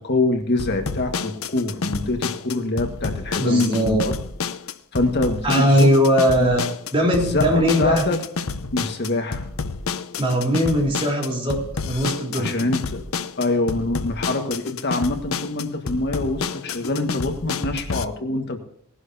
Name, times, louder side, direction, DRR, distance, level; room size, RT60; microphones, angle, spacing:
voice 1, 0.0-4.1 4.9-5.9 6.4-6.5 7.3-8.2 8.7-9.5 12.4-13.1 13.4-18.6, left 2 dB, 55° left, 5 dB, 1.7 m, -24 dB
sound 1, 0.6-18.0, left 4 dB, 80° left, 0.8 m, -29 dB
voice 2, 3.4-4.0 5.4-8.0 10.2-12.7, equal, 25° right, -1 dB, 3.9 m, -20 dB
20.0 x 11.0 x 2.8 m, 0.68 s
head